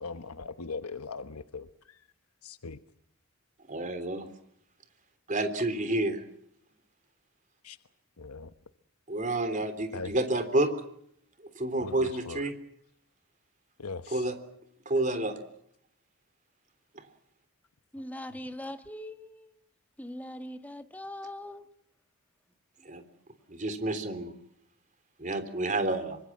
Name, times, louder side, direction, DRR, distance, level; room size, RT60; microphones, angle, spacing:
voice 1, 0.0-2.0 2.4-2.8 7.6-7.8 8.2-8.5 9.9-10.1 11.8-12.4 13.8-14.3, left 4 dB, 90° left, 1.2 m, -40 dB
voice 2, 3.7-4.3 5.3-6.2 9.1-10.7 11.6-12.5 14.1-14.3 14.9-15.4 22.9-23.0 23.5-24.3 25.2-26.2, right 2 dB, 35° right, 3.5 m, -29 dB
voice 3, 17.9-19.6 20.0-21.6, left 1 dB, 5° left, 1.6 m, -41 dB
26.0 x 25.5 x 7.4 m
head